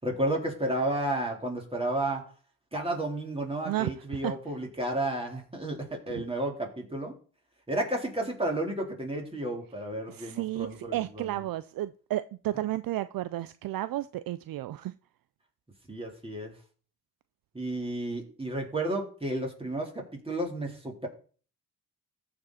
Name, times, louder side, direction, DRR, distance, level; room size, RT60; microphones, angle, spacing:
voice 1, 0.0-2.3 2.7-7.2 7.7-11.4 15.9-16.5 17.5-21.1, right 1 dB, 15° right, 3.9 m, -32 dB
voice 2, 3.7-4.3 6.1-6.2 10.1-15.0, right 15 dB, 60° right, 0.5 m, -33 dB
14.5 x 5.2 x 4.2 m
supercardioid pair, 55°, 39 cm